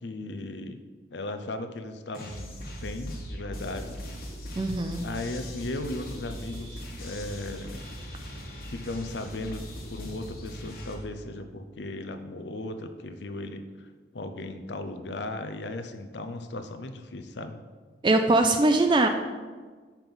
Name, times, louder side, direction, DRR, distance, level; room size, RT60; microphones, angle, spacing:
voice 1, 0.0-0.8 1.1-4.0 5.0-7.8 8.7-9.6 9.9-17.6, left 2 dB, 80° left, 9 dB, 0.7 m, -37 dB
sound 1, 2.1-10.9, equal, 55° left, 1.4 m, -39 dB
voice 2, 4.6-5.0 18.0-19.1, right 2 dB, 25° right, 5 dB, 0.4 m, -21 dB
5.8 x 5.3 x 6.0 m, 1.4 s
head